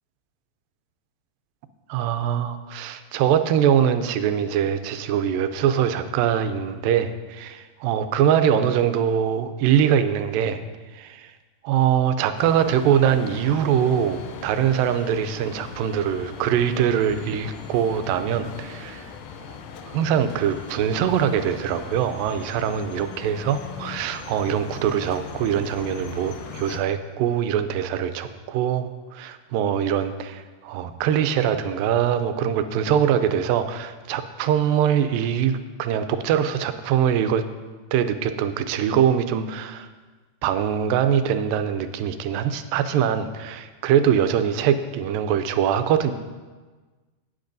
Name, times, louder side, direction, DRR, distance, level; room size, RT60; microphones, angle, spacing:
voice 1, 1.9-10.6 10.9-11.3 11.6-19.1 19.5-19.6 19.9-37.5 37.9-39.9 40.4-46.1, right 9 dB, 85° right, 10 dB, 2.3 m, -23 dB
sound 1, 12.4-26.8, left 6 dB, 90° left, 2.5 m, -39 dB
17.5 x 7.9 x 2.6 m, 1.3 s
omnidirectional pair, 4.0 m